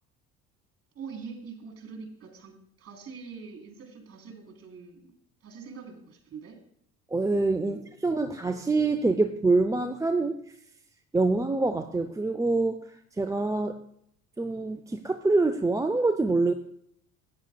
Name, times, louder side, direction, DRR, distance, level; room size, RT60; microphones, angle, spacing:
voice 1, 1.0-5.1 5.4-6.6 7.6-7.9, right 5 dB, 35° right, 4 dB, 3.6 m, -44 dB
voice 2, 7.1-10.4 11.1-12.8 13.2-13.8 14.4-16.5, right 3 dB, 10° right, 7 dB, 0.5 m, -25 dB
16.0 x 9.8 x 2.3 m, 0.68 s
hypercardioid pair, 65°, 42 cm